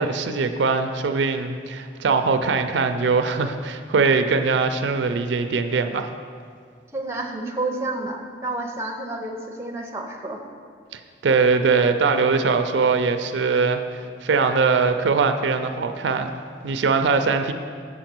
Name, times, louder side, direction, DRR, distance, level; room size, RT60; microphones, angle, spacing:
voice 1, 0.0-6.1 10.9-16.3 16.6-17.5, right 4 dB, 80° right, 8 dB, 0.4 m, -21 dB
voice 2, 6.9-10.4, right 2 dB, 15° right, 2 dB, 0.6 m, -30 dB
7.3 x 5.1 x 6.0 m, 2.1 s
head